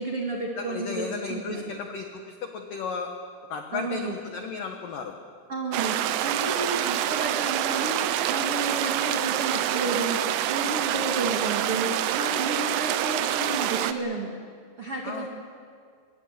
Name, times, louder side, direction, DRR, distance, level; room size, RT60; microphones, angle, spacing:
voice 1, 0.0-1.6 3.7-4.2 5.5-14.3 14.8-15.3, right 2 dB, 65° right, -1 dB, 1.4 m, -32 dB
voice 2, 0.6-3.1 3.5-5.1 10.8-11.3 15.0-15.3, left 5 dB, 90° left, 4 dB, 1.9 m, -34 dB
sound 1, 5.7-13.9, right 12 dB, 85° right, 3.4 m, -26 dB
23.0 x 21.0 x 8.2 m, 2.1 s
omnidirectional pair, 5.9 m